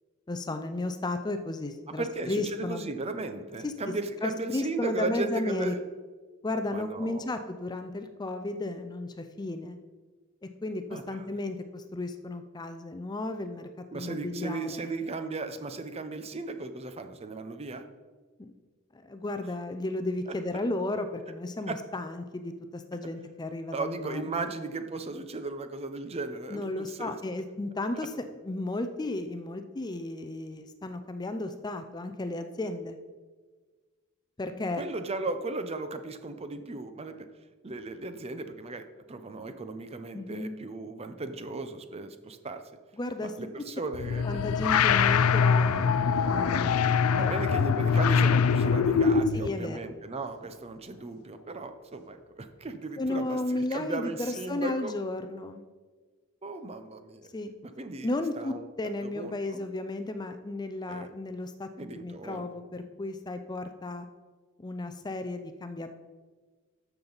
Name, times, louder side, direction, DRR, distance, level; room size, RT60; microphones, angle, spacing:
voice 1, 0.3-2.9 3.6-3.7 4.2-5.7 6.4-9.8 10.6-13.7 13.9-14.9 18.4-18.5 18.9-24.5 26.5-28.1 28.4-33.0 34.4-34.8 40.1-40.6 43.0-43.3 44.2-45.9 46.2-47.3 49.3-49.8 53.0-55.6 57.3-57.5 58.0-64.1 64.6-65.9, left 2 dB, 20° left, 8 dB, 0.5 m, -34 dB
voice 2, 1.9-5.8 6.7-7.3 10.9-11.2 13.9-17.8 20.3-20.4 21.7-21.8 23.7-27.1 34.8-37.3 37.6-42.6 43.4-44.2 47.2-54.9 56.4-57.3 57.6-58.1 58.4-58.7 59.0-59.7 60.9-61.1 61.8-62.5, right 3 dB, 30° right, 9 dB, 0.6 m, -36 dB
sound 1, 43.9-49.5, left 6 dB, 80° left, 0.4 m, -23 dB
13.0 x 6.9 x 4.0 m, 1.4 s
head